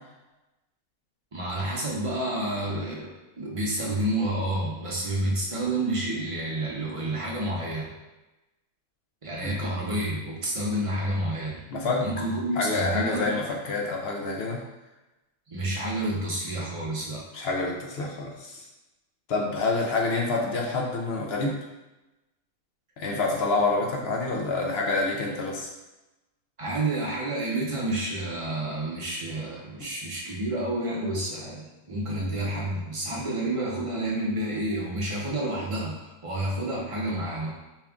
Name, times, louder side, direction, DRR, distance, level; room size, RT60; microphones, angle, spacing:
voice 1, 1.3-3.1 3.4-7.9 9.2-11.6 12.0-13.2 15.5-17.2 26.6-37.5, right 1 dB, 30° right, -5 dB, 0.7 m, -29 dB
voice 2, 11.7-12.1 12.6-14.6 17.3-18.7 19.3-21.6 23.0-25.7, left 3 dB, 65° left, 0 dB, 0.6 m, -27 dB
4.4 x 2.4 x 3.5 m, 1.0 s
omnidirectional pair, 1.5 m